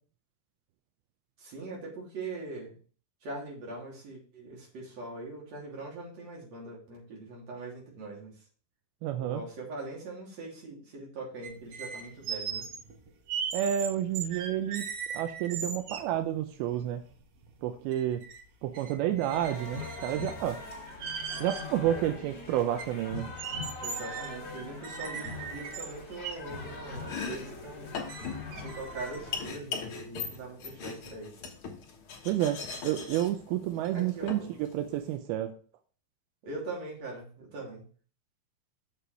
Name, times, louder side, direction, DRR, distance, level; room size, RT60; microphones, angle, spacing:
voice 1, 1.4-2.8 3.2-8.3 9.2-12.7 23.8-28.0 28.5-31.4 33.9-34.6 36.4-37.8, right 2 dB, 45° right, -3 dB, 4.1 m, -42 dB
voice 2, 9.0-9.4 13.5-14.9 15.1-17.0 17.6-18.2 18.6-20.6 21.4-23.3 32.3-34.4 34.7-35.5, right 11 dB, 85° right, 7 dB, 2.6 m, -30 dB
sound 1, 11.4-16.2 16.7-16.8 17.1-18.4 18.7-20.4 20.9-21.7 22.2-22.3 22.8-26.4 27.0-27.1 27.6-27.7 28.1-29.2, right 7 dB, 70° right, 1.5 m, -39 dB
sound 2, 19.3-29.5, left 3 dB, 35° left, 2.3 m, -42 dB
Domestic sounds home sounds, 26.9-35.1, left 5 dB, 65° left, 1.4 m, -40 dB
7.1 x 6.8 x 4.5 m, 0.41 s
omnidirectional pair, 4.3 m